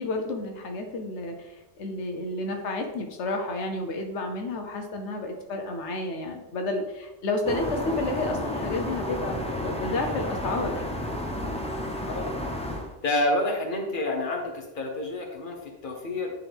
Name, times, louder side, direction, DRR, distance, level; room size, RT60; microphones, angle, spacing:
voice 1, 0.0-10.9, left 2 dB, 90° left, 4 dB, 1.1 m, -31 dB
sound 1, 7.4-13.0, left 1 dB, 5° left, 0.6 m, -31 dB
voice 2, 13.0-16.3, left 1 dB, 50° left, 1 dB, 1.3 m, -28 dB
9.9 x 3.8 x 3.5 m, 1.0 s
omnidirectional pair, 1.2 m